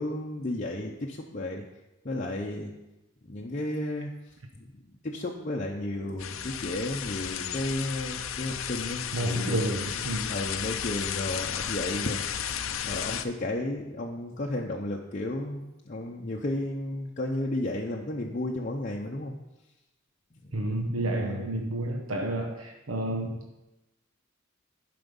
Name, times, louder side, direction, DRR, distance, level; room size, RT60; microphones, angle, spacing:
voice 1, 0.0-1.6 2.0-2.7 3.2-4.1 5.0-9.8 10.3-12.5 12.8-19.3 21.2-21.4, left 1 dB, 35° left, -2 dB, 0.7 m, -33 dB
sound 1, 6.2-13.2, left 9 dB, 75° left, 0.6 m, -33 dB
voice 2, 9.1-10.3 20.5-23.6, right 1 dB, 75° right, 2 dB, 0.9 m, -30 dB
11.5 x 5.1 x 5.3 m, 0.98 s
head